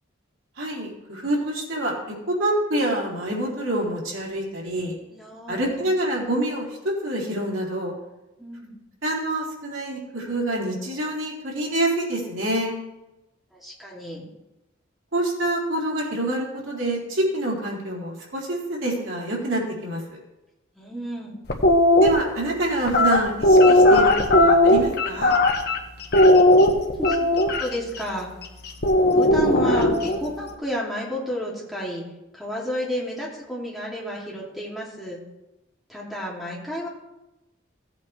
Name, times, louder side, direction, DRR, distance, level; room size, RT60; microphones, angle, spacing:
voice 1, 0.6-5.0 5.5-7.9 9.0-12.8 15.1-20.2 22.0-25.3, right 1 dB, 90° right, -4 dB, 3.8 m, -26 dB
voice 2, 5.1-5.9 8.4-8.8 13.5-14.3 20.8-21.4 26.7-27.2 27.4-28.3 29.1-32.0 32.3-35.2 35.9-36.9, equal, ahead, -5 dB, 2.8 m, -32 dB
sound 1, 21.5-22.1 22.9-25.8 26.1-27.6 28.8-30.2, left 1 dB, 55° left, 1.2 m, -16 dB
17.0 x 8.2 x 3.3 m, 0.98 s
head